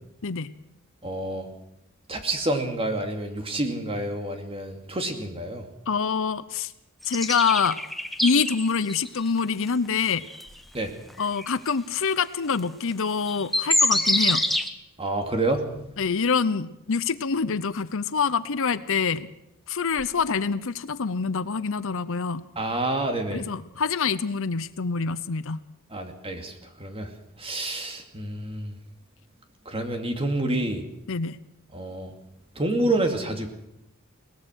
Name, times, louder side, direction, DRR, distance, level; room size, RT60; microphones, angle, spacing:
voice 1, 0.2-0.5 5.9-6.7 7.0-7.8 8.2-10.2 11.2-14.4 16.0-19.3 19.7-22.4 23.3-25.6 31.1-31.4, left 5 dB, 65° left, 14 dB, 0.8 m, -26 dB
voice 2, 1.0-1.5 2.1-5.7 10.7-10.9 15.0-15.7 22.6-23.4 25.9-27.1 27.4-28.7 29.7-30.8 31.7-32.1 32.6-33.5, right 2 dB, 25° right, 5 dB, 2.5 m, -28 dB
sound 1, 7.1-9.1 9.7-9.8 10.3-10.4 11.4-11.5 12.9-13.0 13.3-14.7, left 1 dB, ahead, 1.2 m, -25 dB
22.0 x 19.0 x 6.4 m, 0.83 s
head